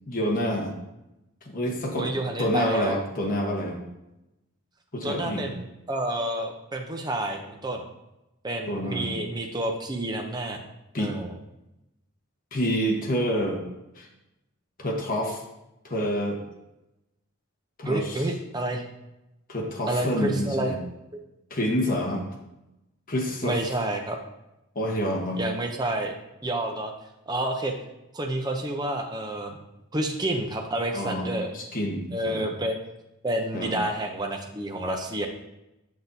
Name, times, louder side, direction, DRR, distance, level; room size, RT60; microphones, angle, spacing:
voice 1, 0.1-0.8 1.4-3.8 4.9-5.5 8.7-9.1 10.9-11.1 12.5-13.6 14.0-14.1 14.8-15.4 15.8-16.4 17.8-18.3 19.5-20.8 21.5-22.3 23.1-23.6 24.7-25.4 30.9-31.3 31.5-32.5 33.5-33.7, equal, 40° left, 0 dB, 1.1 m, -28 dB
voice 2, 2.0-3.0 5.0-7.8 8.4-10.6 11.0-11.3 17.8-18.8 19.9-20.7 23.4-24.2 25.4-26.1 26.4-26.9 27.3-27.7 28.1-29.5 29.9-31.5 32.1-32.8 33.2-35.3, right 1 dB, 20° right, 3 dB, 0.6 m, -29 dB
7.1 x 6.1 x 2.7 m, 0.93 s
head